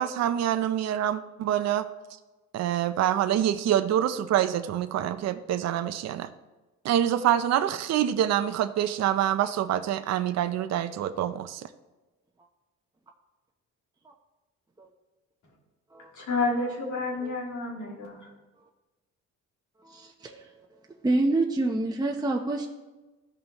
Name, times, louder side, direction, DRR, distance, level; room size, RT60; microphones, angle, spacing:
voice 1, 0.0-1.9 2.5-6.3 6.8-11.7, right 11 dB, 60° right, 10 dB, 0.5 m, -26 dB
voice 2, 16.1-18.3, left 3 dB, 80° left, -4 dB, 3.0 m, -30 dB
voice 3, 19.8-20.7 21.0-22.7, right 2 dB, 15° right, 1 dB, 0.7 m, -28 dB
14.0 x 5.5 x 3.0 m, 1.2 s
cardioid pair, 90°, 30 cm